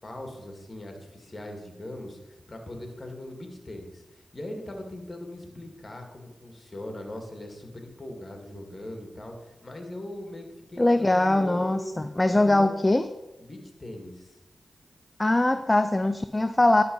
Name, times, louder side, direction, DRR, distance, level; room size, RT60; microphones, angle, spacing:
voice 1, 0.0-11.9 12.3-12.7 13.4-14.4, left 1 dB, 40° left, 3 dB, 2.2 m, -40 dB
voice 2, 10.8-13.1 15.2-16.8, left 2 dB, 25° left, 9 dB, 0.5 m, -22 dB
11.5 x 4.1 x 5.5 m, 0.99 s
cardioid pair, 45°, 0 cm